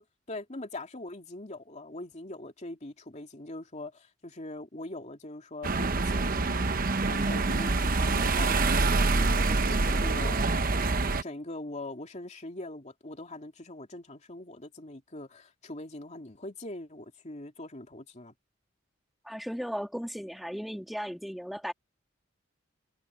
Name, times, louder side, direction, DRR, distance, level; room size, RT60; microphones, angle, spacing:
voice 1, 0.0-6.8 7.0-10.4 11.2-18.3, left 2 dB, 35° left, 2.7 m, -42 dB
sound 1, 5.6-11.2, right 3 dB, 45° right, 1.0 m, -26 dB
voice 2, 19.3-21.7, equal, ahead, 2.2 m, -36 dB
head